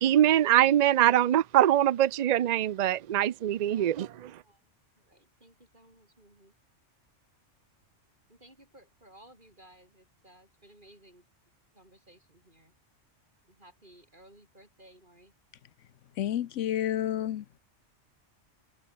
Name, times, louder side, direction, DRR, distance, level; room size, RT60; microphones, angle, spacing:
voice 1, 0.0-4.3, right 12 dB, 75° right, 0.4 m, -23 dB
voice 2, 3.7-4.7 5.0-6.5 8.3-11.2 11.7-12.7 13.5-15.3, right 1 dB, 40° right, 8.2 m, -58 dB
voice 3, 16.2-17.6, left 11 dB, 80° left, 1.0 m, -30 dB
omnidirectional pair, 1.3 m